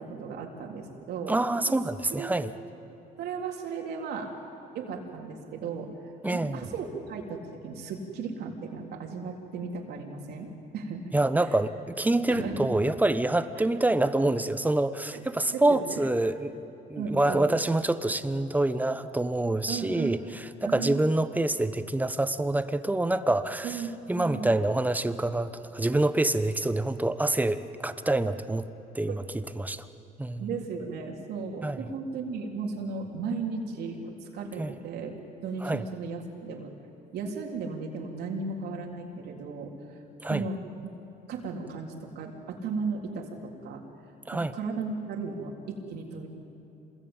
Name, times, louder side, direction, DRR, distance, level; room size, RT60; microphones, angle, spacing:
voice 1, 0.0-1.4 2.1-2.3 3.2-4.3 4.7-5.9 6.3-10.5 10.7-11.0 11.5-11.6 12.3-12.7 15.1-15.2 15.5-16.1 17.0-17.5 19.7-20.3 20.6-21.0 23.6-24.5 29.1-29.2 30.4-35.1 35.4-36.7 37.1-40.0 40.2-40.9 41.3-43.8 44.3-46.3, right 4 dB, 75° right, 1 dB, 3.7 m, -35 dB
voice 2, 1.3-2.5 6.2-6.7 11.1-16.6 16.9-23.8 24.1-28.7 28.9-29.2 29.5-29.9 30.2-30.5 31.6-31.8 34.6-34.7 35.6-35.8 40.2-40.4 44.3-44.5, right 2 dB, 10° right, 11 dB, 1.0 m, -26 dB
27.0 x 21.0 x 9.0 m, 3.0 s
cardioid pair, 110°, 17 cm